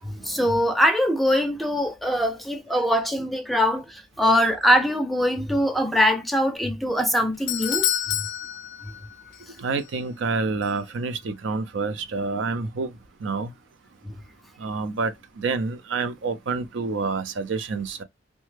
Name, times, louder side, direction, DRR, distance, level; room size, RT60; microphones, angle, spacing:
voice 1, 0.0-7.9 14.0-14.1, equal, ahead, 0.4 m, -22 dB
Doorbell, 7.0-9.5 9.8-9.9 10.6-10.7, left 12 dB, 70° left, 0.5 m, -28 dB
voice 2, 9.6-12.9 13.2-13.5 14.6-18.0, right 4 dB, 70° right, 0.4 m, -28 dB
3.1 x 2.1 x 3.1 m
head